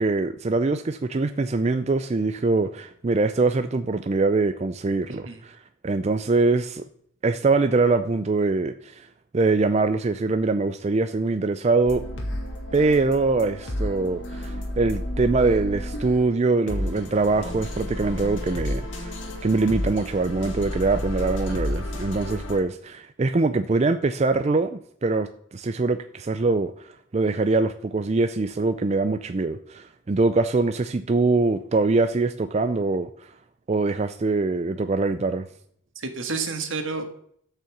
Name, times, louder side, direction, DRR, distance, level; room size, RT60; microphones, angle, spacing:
voice 1, 0.0-5.6 5.8-6.8 7.2-9.1 9.3-12.0 12.7-19.2 19.4-33.3 33.7-35.5, right 3 dB, 30° right, 0.4 m, -23 dB
voice 2, 5.1-5.4 21.5-21.6 21.9-22.0 35.9-37.0, right 4 dB, 75° right, 1.6 m, -31 dB
sound 1, 11.9-16.3 16.7-22.6, left 1 dB, 65° left, 2.1 m, -31 dB
13.0 x 5.7 x 7.2 m
head